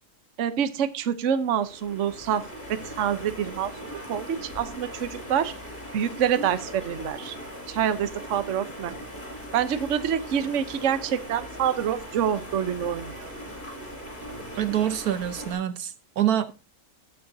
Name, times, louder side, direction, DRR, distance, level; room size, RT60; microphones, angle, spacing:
voice 1, 0.4-3.7 4.1-5.5 5.9-7.4 7.7-9.0 9.5-13.3, right 9 dB, 55° right, 1.1 m, -27 dB
sound 1, 1.2-15.5, equal, 30° left, 6.9 m, -40 dB
voice 2, 14.6-16.5, right 11 dB, 75° right, 1.4 m, -26 dB
19.0 x 7.1 x 2.7 m
omnidirectional pair, 1.6 m